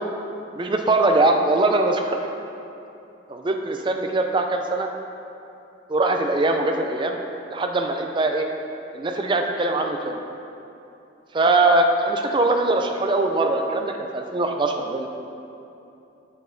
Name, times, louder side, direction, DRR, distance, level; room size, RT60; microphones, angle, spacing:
voice 1, 0.6-2.2 3.3-4.9 5.9-7.2 7.5-8.5 8.9-10.2 11.3-15.1, right 2 dB, 25° right, 4 dB, 0.4 m, -21 dB
7.9 x 5.4 x 3.7 m, 2.8 s
head